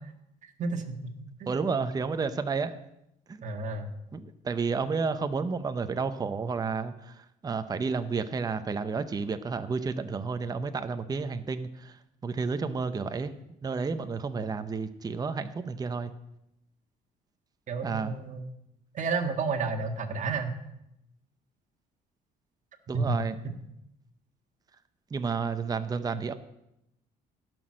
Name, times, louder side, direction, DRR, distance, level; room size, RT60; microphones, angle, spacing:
voice 1, 0.6-1.1 1.4-1.5 3.4-3.9 17.7-18.4 18.9-20.5 22.9-23.2 23.4-23.5, right 4 dB, 45° right, 4 dB, 1.7 m, -31 dB
voice 2, 1.5-2.8 3.3-3.4 4.1-12.0 12.2-13.3 13.6-16.1 17.8-18.1 22.9-23.4 25.1-26.3, right 4 dB, 20° right, 10 dB, 0.7 m, -31 dB
15.0 x 6.2 x 6.4 m, 0.83 s
cardioid pair, 110°, 17 cm